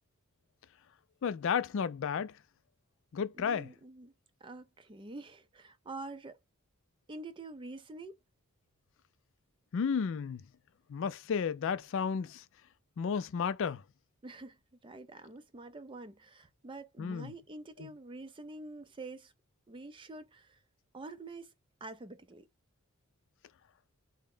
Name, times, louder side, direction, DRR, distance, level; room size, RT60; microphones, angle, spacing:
voice 1, 1.2-2.3 3.1-3.7 9.7-10.4 10.9-12.4 13.0-13.8 17.0-17.3, left 6 dB, 60° left, 0.4 m, -32 dB
voice 2, 3.4-4.1 4.4-6.4 7.1-8.2 14.2-14.6 14.8-19.3 19.7-20.6 20.9-21.5 21.8-22.5, right 2 dB, 25° right, 0.4 m, -46 dB
3.7 x 2.1 x 3.6 m
head